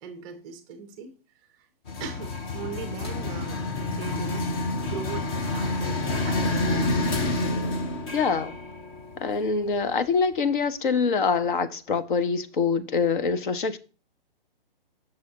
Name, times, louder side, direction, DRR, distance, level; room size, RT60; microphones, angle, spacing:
voice 1, 0.0-1.1 1.5-1.7 2.0-3.6 3.9-6.7, right 6 dB, 15° right, 0.5 m, -40 dB
sound 1, 1.9-9.8, left 2 dB, 25° left, 0.7 m, -28 dB
voice 2, 8.1-8.6 9.2-13.8, left 5 dB, 55° left, 0.9 m, -25 dB
7.5 x 6.4 x 2.8 m
hypercardioid pair, 150°, 30 cm